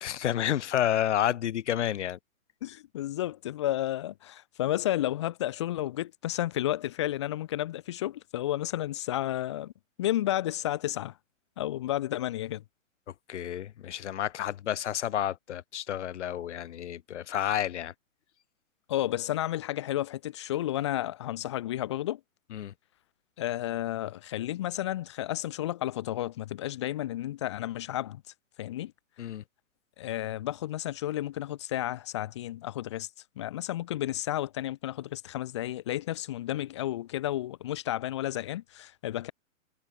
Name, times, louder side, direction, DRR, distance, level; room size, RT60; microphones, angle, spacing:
voice 1, 0.0-2.2 13.3-17.9 22.5-22.7 29.2-29.4, left 11 dB, 55° left, 2.1 m, -30 dB
voice 2, 2.6-9.7 10.0-11.2 11.6-12.6 18.9-22.2 23.4-28.2 28.6-28.9 30.0-33.1 33.4-39.3, left 13 dB, 20° left, 0.5 m, -32 dB
hypercardioid pair, 145°, 41 cm